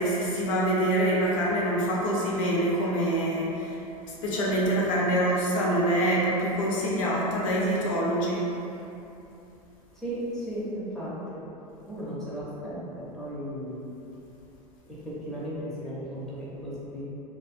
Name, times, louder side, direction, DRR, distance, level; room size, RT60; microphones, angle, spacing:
voice 1, 0.0-8.5, right 1 dB, 55° left, -4 dB, 0.5 m, -25 dB
voice 2, 10.0-11.4 11.9-13.9 14.9-17.0, equal, ahead, -9 dB, 0.6 m, -35 dB
2.3 x 2.2 x 2.4 m, 2.9 s
figure-of-eight pair, 85°, 20 cm